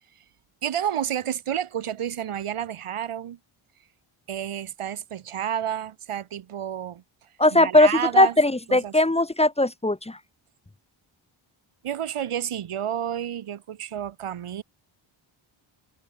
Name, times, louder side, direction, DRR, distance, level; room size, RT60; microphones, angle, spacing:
voice 1, 0.6-3.4 4.3-7.0 7.5-8.4 8.7-8.9 11.8-14.6, right 10 dB, 80° right, 7.8 m, -30 dB
voice 2, 7.4-7.9 8.2-10.2, left 1 dB, 10° left, 3.2 m, -19 dB
wide cardioid pair, 145°, 50 cm